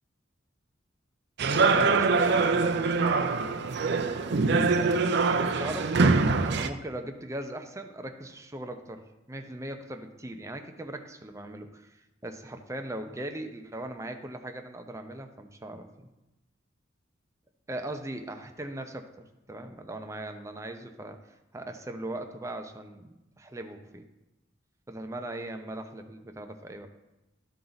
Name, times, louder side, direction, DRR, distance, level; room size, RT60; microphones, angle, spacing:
sound 1, 1.4-6.7, right 4 dB, 60° right, 0.5 m, -24 dB
voice 1, 1.7-2.6 5.4-6.0 6.4-16.1 17.7-19.1 19.5-21.2 21.5-24.0 24.9-26.9, right 1 dB, 15° right, 5 dB, 0.7 m, -39 dB
12.5 x 4.5 x 4.0 m, 0.98 s
head